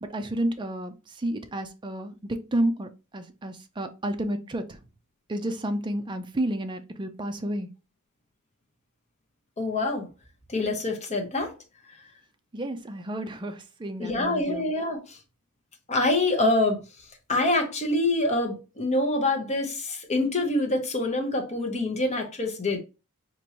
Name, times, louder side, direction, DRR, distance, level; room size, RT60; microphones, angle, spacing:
voice 1, 0.0-4.8 5.3-7.7 12.5-14.6, right 1 dB, 20° right, 0.4 m, -31 dB
voice 2, 9.6-10.1 10.5-11.5 14.0-15.2 15.9-16.8 17.3-22.8, left 2 dB, 30° left, 0.9 m, -25 dB
4.4 x 2.6 x 2.8 m
head